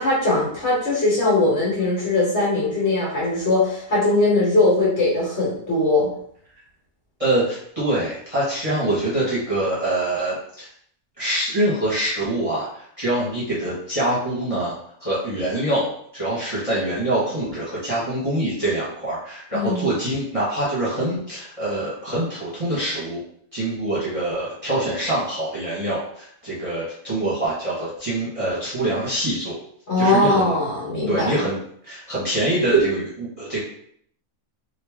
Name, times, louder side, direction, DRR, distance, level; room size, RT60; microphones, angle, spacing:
voice 1, 0.0-6.1 19.5-19.9 29.9-31.3, left 2 dB, 55° left, -6 dB, 1.5 m, -20 dB
voice 2, 7.2-10.7 11.2-14.7 15.0-23.2 23.5-29.6 30.0-30.5 31.1-31.6 31.8-33.6, right 1 dB, 25° right, -9 dB, 1.0 m, -24 dB
3.1 x 2.5 x 3.5 m, 0.65 s
omnidirectional pair, 1.5 m